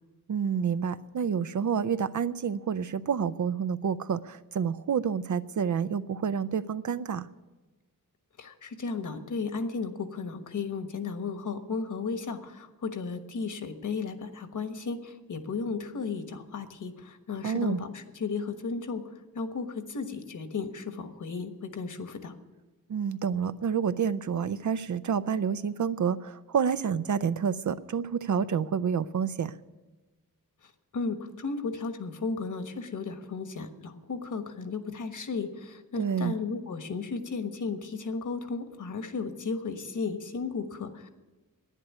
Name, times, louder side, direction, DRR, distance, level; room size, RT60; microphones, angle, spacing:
voice 1, 0.3-7.3 17.4-17.8 22.9-29.5 36.0-36.3, right 7 dB, 60° right, 14 dB, 0.6 m, -29 dB
voice 2, 8.4-19.0 19.3-22.3 30.6-41.1, left 4 dB, 60° left, 8 dB, 1.3 m, -34 dB
11.0 x 9.8 x 9.5 m, 1.2 s
wide cardioid pair, 135°, 34 cm